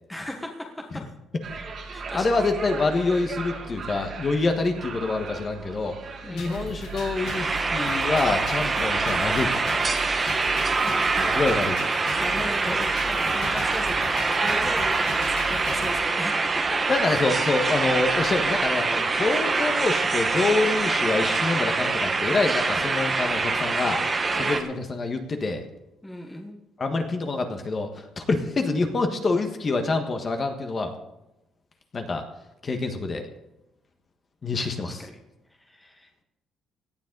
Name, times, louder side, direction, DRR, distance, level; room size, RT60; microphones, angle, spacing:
voice 1, 0.1-1.0 1.9-2.4 6.2-6.7 10.2-11.6 12.1-16.8 24.3-24.7 26.0-26.6 34.8-35.2 35.6-36.2, left 1 dB, 5° left, 2 dB, 1.3 m, -37 dB
sound 1, 1.4-20.7, right 4 dB, 40° right, 2.2 m, -40 dB
voice 2, 2.1-5.9 6.3-9.6 11.3-11.7 16.9-24.0 24.3-25.6 26.8-30.9 31.9-32.2 32.6-33.3 34.4-35.0, left 3 dB, 30° left, 5 dB, 1.5 m, -26 dB
sound 2, 6.4-16.0, equal, 90° left, 3.6 m, -38 dB
sound 3, 7.2-24.6, right 3 dB, 20° right, 1.2 m, -25 dB
17.5 x 11.5 x 4.0 m, 0.91 s
cardioid pair, 165°, 0 cm